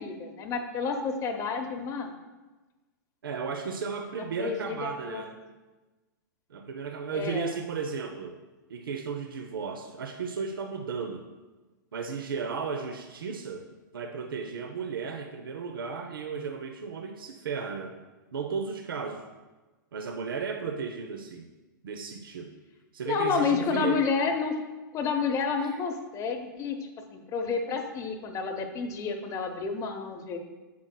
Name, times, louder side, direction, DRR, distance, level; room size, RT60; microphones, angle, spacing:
voice 1, 0.0-2.1 4.4-4.8 5.0-5.3 7.1-7.5 23.1-24.6 24.9-26.8 27.1-30.4, left 5 dB, 30° left, 5 dB, 0.7 m, -30 dB
voice 2, 3.2-5.4 6.5-8.4 8.7-11.3 11.9-13.7 13.9-17.9 18.3-19.2 19.9-21.5 21.8-22.5 22.9-24.0 25.6-25.7, right 5 dB, 85° right, 5 dB, 0.6 m, -34 dB
9.3 x 6.1 x 2.2 m, 1.2 s
hypercardioid pair, 120°, 11 cm